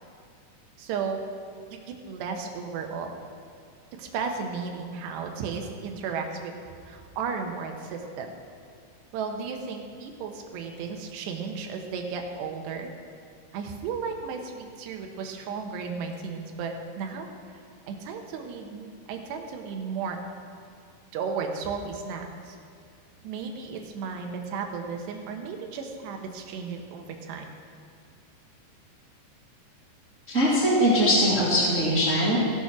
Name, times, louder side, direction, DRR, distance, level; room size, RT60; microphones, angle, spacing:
voice 1, 0.8-1.2 1.7-3.2 4.0-6.5 6.9-8.3 9.1-12.9 13.5-17.3 17.9-20.2 21.1-22.6 23.2-27.5, right 5 dB, 75° right, 3 dB, 3.0 m, -34 dB
voice 2, 30.3-32.4, equal, 45° right, -7 dB, 0.9 m, -21 dB
16.0 x 6.9 x 6.1 m, 2.3 s
omnidirectional pair, 5.4 m